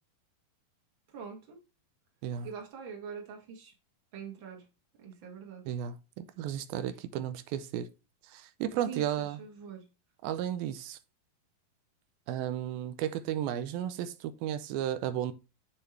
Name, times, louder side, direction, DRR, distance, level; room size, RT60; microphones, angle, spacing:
voice 1, 1.1-1.6 2.4-3.7 4.1-4.6 5.0-5.7 8.9-9.9, right 6 dB, 40° right, 2.5 m, -44 dB
voice 2, 5.7-7.9 8.3-9.4 10.2-11.0 12.3-15.3, right 10 dB, 85° right, 2.5 m, -34 dB
8.0 x 7.0 x 3.3 m
omnidirectional pair, 4.2 m